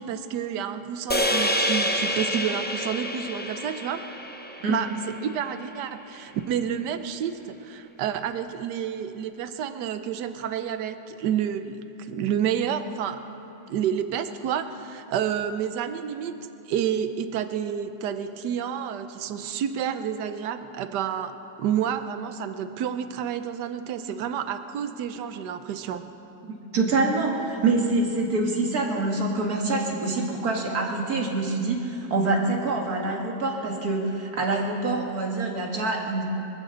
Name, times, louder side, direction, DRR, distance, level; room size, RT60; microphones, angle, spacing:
voice 1, 0.0-4.0 4.7-13.2 13.7-16.3 16.7-21.3 21.6-26.1, right 8 dB, 75° right, 10 dB, 1.3 m, -29 dB
sound 1, 1.1-5.5, equal, 15° left, 0.4 m, -28 dB
voice 2, 26.4-36.2, right 3 dB, 60° right, 0 dB, 2.3 m, -25 dB
24.0 x 14.5 x 3.9 m, 2.9 s
omnidirectional pair, 1.9 m